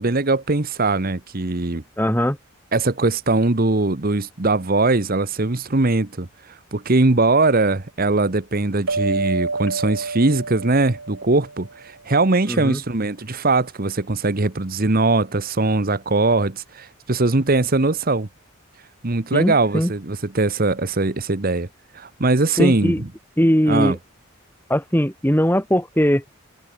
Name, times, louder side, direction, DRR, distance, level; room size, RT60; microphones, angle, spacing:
voice 1, 0.0-1.8 2.7-6.3 6.7-18.3 19.0-21.7 21.9-23.1 23.7-24.0, right 2 dB, 40° right, 1.1 m, -20 dB
voice 2, 2.0-2.4 12.5-12.8 19.3-19.9 22.6-23.0 23.4-24.0 24.7-26.2, equal, 10° left, 3.3 m, -19 dB
sound 1, 8.9-11.9, right 3 dB, 85° right, 4.2 m, -28 dB
head